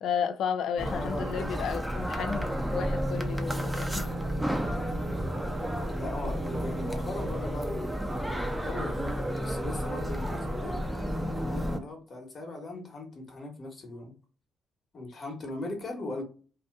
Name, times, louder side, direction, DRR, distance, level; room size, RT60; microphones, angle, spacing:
voice 1, 0.0-4.1, left 7 dB, 75° left, 0.4 m, -33 dB
voice 2, 0.8-1.5 1.8-2.9 5.9-10.8 11.4-14.1 14.9-16.2, left 2 dB, 45° left, 1.1 m, -39 dB
sound 1, 0.8-11.8, equal, 5° right, 0.5 m, -31 dB
Wind instrument woodwind instrument, 2.7-11.9, right 1 dB, 75° right, 0.4 m, -50 dB
2.7 x 2.2 x 3.5 m
cardioid pair, 90°, 0 cm